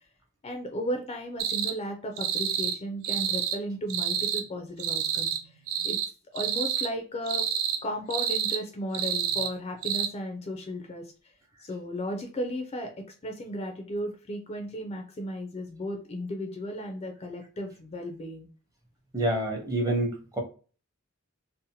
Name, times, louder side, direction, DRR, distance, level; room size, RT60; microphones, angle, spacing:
voice 1, 0.4-6.0 6.3-7.5 7.8-11.3 11.6-12.9 13.2-18.5, equal, 30° left, 5 dB, 0.3 m, -35 dB
sound 1, 1.4-1.7 2.2-2.8 3.0-3.6 3.9-4.4 4.8-5.4 5.7-6.1 6.4-6.9 7.3-7.8 8.1-8.6 8.9-9.5 9.8-10.1, right 8 dB, 80° right, 0.4 m, -29 dB
voice 2, 19.1-20.4, right 1 dB, 15° right, 0 dB, 0.7 m, -27 dB
2.7 x 2.0 x 2.7 m, 0.37 s
head